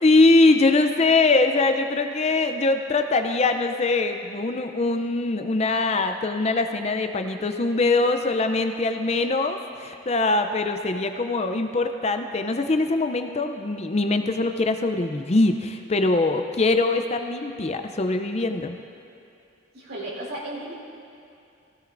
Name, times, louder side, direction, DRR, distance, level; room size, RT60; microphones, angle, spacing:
voice 1, 0.0-18.8, left 3 dB, 30° left, 7 dB, 0.5 m, -22 dB
voice 2, 19.7-20.7, right 1 dB, 85° right, -6 dB, 3.7 m, -34 dB
18.0 x 16.0 x 2.6 m, 2.6 s
head